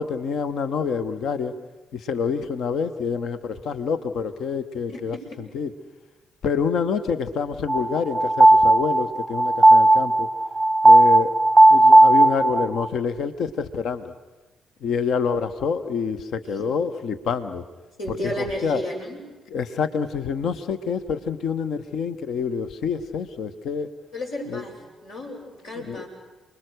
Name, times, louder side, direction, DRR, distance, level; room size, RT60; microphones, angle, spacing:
voice 1, 0.0-1.5 1.9-5.2 5.5-5.7 6.4-10.3 10.8-11.3 11.7-14.1 14.8-17.6 18.1-18.8 19.5-23.9 24.5-24.6 25.9-26.0, left 6 dB, 55° left, 12 dB, 1.0 m, -27 dB
voice 2, 4.9-5.4 16.4-16.7 18.0-19.2 24.1-26.1, equal, 80° left, -7 dB, 7.0 m, -33 dB
sound 1, 7.7-12.8, right 2 dB, 20° right, 0.7 m, -15 dB
29.5 x 21.0 x 6.6 m, 1.2 s
figure-of-eight pair, 40°, 0 cm